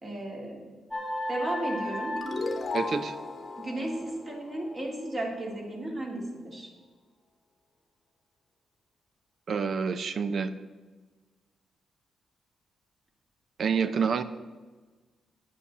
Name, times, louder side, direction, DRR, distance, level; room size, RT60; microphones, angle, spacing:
voice 1, 0.0-0.6 1.3-2.2 3.6-6.7, right 1 dB, 25° right, 0 dB, 2.1 m, -34 dB
sound 1, 0.9-3.5, left 1 dB, 5° right, 1.9 m, -35 dB
sound 2, 2.2-5.4, left 3 dB, 35° left, 1.0 m, -36 dB
voice 2, 2.7-3.2 9.5-10.5 13.6-14.2, right 5 dB, 45° right, 12 dB, 0.6 m, -27 dB
9.7 x 5.7 x 7.2 m, 1.3 s
cardioid pair, 145°, 0 cm